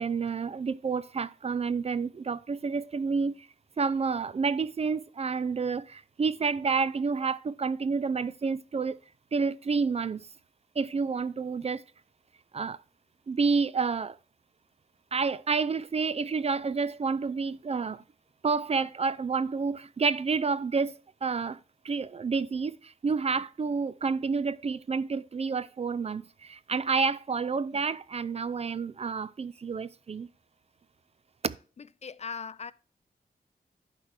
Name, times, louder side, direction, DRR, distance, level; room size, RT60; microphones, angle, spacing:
voice 1, 0.0-3.5 3.8-9.0 9.3-10.3 10.8-11.8 12.5-12.8 13.3-14.2 15.1-18.0 18.4-20.9 21.2-21.6 21.8-30.3 31.4-31.6, right 5 dB, 40° right, 0.4 m, -29 dB
voice 2, 31.8-32.7, left 6 dB, 45° left, 0.4 m, -39 dB
11.0 x 4.4 x 4.6 m
wide cardioid pair, 115°, 16 cm